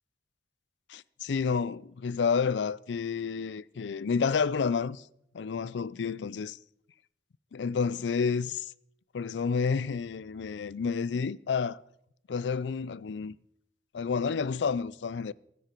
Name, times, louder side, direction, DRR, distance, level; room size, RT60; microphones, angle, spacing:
voice 1, 0.9-5.0 5.3-6.6 7.5-8.7 9.1-11.8 12.3-13.4 13.9-15.3, left 5 dB, 90° left, 0.4 m, -30 dB
22.0 x 9.8 x 4.5 m
head